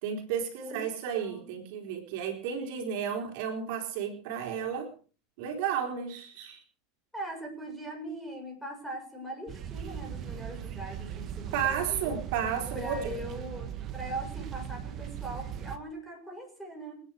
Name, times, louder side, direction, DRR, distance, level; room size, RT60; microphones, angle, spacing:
voice 1, 0.0-4.9 5.4-6.6 11.5-13.2, right 8 dB, 60° right, 3 dB, 4.1 m, -32 dB
voice 2, 1.1-1.5 7.1-12.2 12.7-17.0, right 1 dB, ahead, -2 dB, 7.4 m, -41 dB
sound 1, 9.5-15.8, right 9 dB, 35° right, 2.0 m, -39 dB
28.5 x 10.0 x 4.9 m, 0.40 s
supercardioid pair, 150°, 0 cm